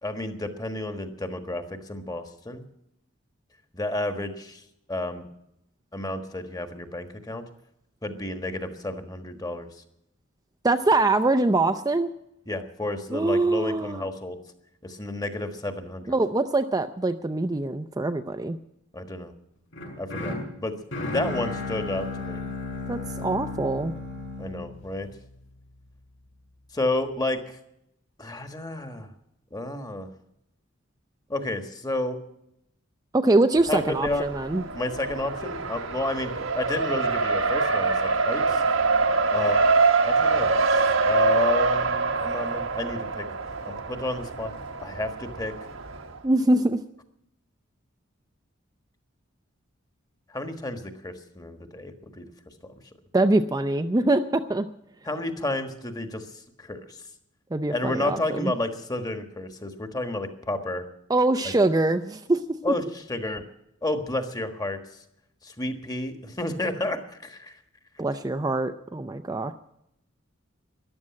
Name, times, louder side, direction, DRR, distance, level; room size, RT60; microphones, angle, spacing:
voice 1, 0.0-2.6 3.7-4.6 4.9-5.2 5.9-7.4 8.0-9.7 12.5-14.4 14.8-16.2 18.9-19.3 20.0-20.8 21.1-22.4 24.4-25.1 26.7-27.6 28.2-29.1 29.5-30.1 31.3-32.2 33.7-34.3 34.7-38.6 39.3-39.7 40.0-43.3 43.7-44.5 44.8-45.5 50.3-52.3 55.0-56.2 56.6-57.0 57.7-60.8 61.4-61.5 62.6-63.4 63.8-64.8 65.4-67.6, left 2 dB, 20° left, 7 dB, 1.5 m, -31 dB
voice 2, 10.6-12.1 13.1-14.1 16.1-18.6 22.9-23.9 33.1-34.6 46.2-46.8 53.1-54.7 57.5-58.5 61.1-62.4 68.0-69.5, right 2 dB, 20° right, 7 dB, 0.5 m, -23 dB
sound 1, 19.7-25.8, left 2 dB, 70° left, 5.5 m, -34 dB
Race car auto racing, 33.6-46.2, right 4 dB, 85° right, 1.4 m, -25 dB
14.0 x 11.0 x 8.5 m, 0.79 s
head